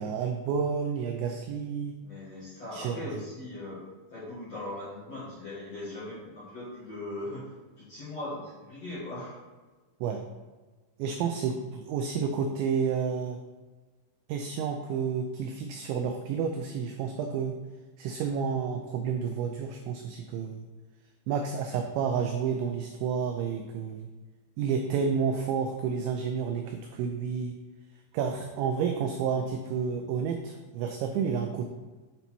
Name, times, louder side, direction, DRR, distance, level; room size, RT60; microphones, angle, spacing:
voice 1, 0.0-2.0 2.7-3.0 10.0-10.2 11.0-13.4 14.3-17.6 18.0-20.7 21.3-24.1 24.6-27.5 28.1-31.7, right 6 dB, 85° right, 4 dB, 2.6 m, -30 dB
voice 2, 2.0-3.8 4.1-7.4 7.8-9.4, left 2 dB, 50° left, -11 dB, 2.1 m, -39 dB
8.3 x 4.0 x 4.5 m, 1.3 s
omnidirectional pair, 5.7 m